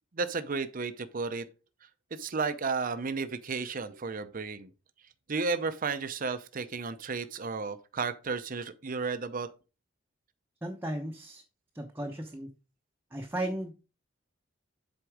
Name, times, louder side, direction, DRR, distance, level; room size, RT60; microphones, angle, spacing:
voice 1, 0.1-1.5 2.1-4.7 5.3-9.5, right 4 dB, 45° right, 0.6 m, -33 dB
voice 2, 10.6-11.4 11.7-12.5 13.1-13.7, right 1 dB, 10° right, 0.8 m, -35 dB
7.8 x 4.4 x 4.9 m
head